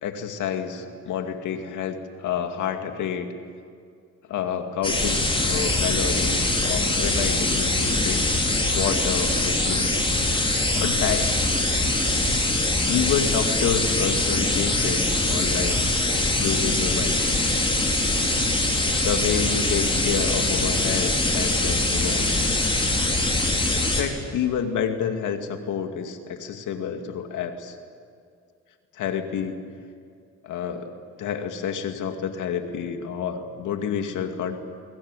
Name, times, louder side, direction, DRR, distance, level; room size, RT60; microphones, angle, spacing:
voice 1, 0.0-3.3 4.3-5.2 5.4-8.2 8.7-9.9 10.7-11.3 12.9-15.9 16.4-17.7 19.0-22.3 23.7-27.8 28.9-29.6 30.4-30.9 31.2-34.6, left 7 dB, 80° left, 6 dB, 2.4 m, -29 dB
sound 1, 4.8-24.0, left 2 dB, 15° left, 5.2 m, -23 dB
22.0 x 21.5 x 9.9 m, 2.3 s
cardioid pair, 90°, 30 cm